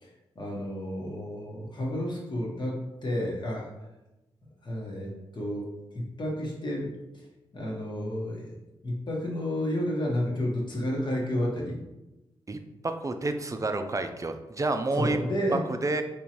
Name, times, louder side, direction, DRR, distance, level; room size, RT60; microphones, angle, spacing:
voice 1, 0.0-3.7 4.6-7.2 7.5-8.5 8.8-11.8 14.9-15.6, left 1 dB, 45° left, -3 dB, 1.3 m, -31 dB
voice 2, 12.5-15.2 15.7-16.0, right 2 dB, 30° right, 7 dB, 0.5 m, -29 dB
3.6 x 3.0 x 3.0 m, 0.99 s
supercardioid pair, 45°, 11 cm